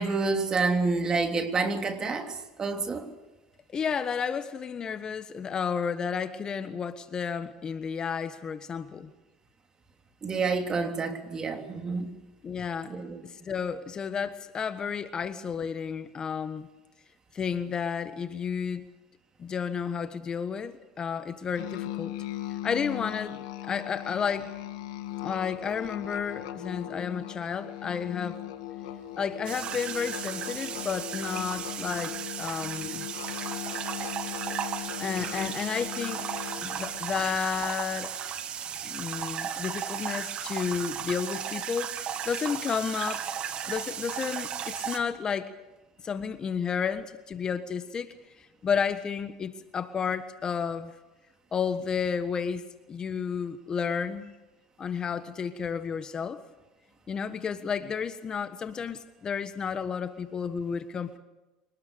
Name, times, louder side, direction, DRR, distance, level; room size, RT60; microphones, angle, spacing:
voice 1, 0.0-3.1 10.2-12.1 12.9-13.2, right 4 dB, 30° right, 5 dB, 3.1 m, -28 dB
voice 2, 3.7-9.1 12.4-12.9 13.2-16.7 17.3-18.8 19.4-22.1 22.5-24.5 25.2-28.4 29.2-33.1 35.0-36.3 36.6-38.2 38.8-43.2 43.7-45.5 46.0-50.9 51.5-52.6 52.9-54.3 54.8-56.4 57.1-61.2, left 6 dB, 35° left, 11 dB, 1.4 m, -32 dB
Musical instrument, 21.5-37.1, left 14 dB, 85° left, 1.9 m, -39 dB
sound 1, 29.4-45.0, right 8 dB, 45° right, 1.8 m, -35 dB
25.0 x 19.5 x 6.9 m, 1.1 s
supercardioid pair, 95°, 2 cm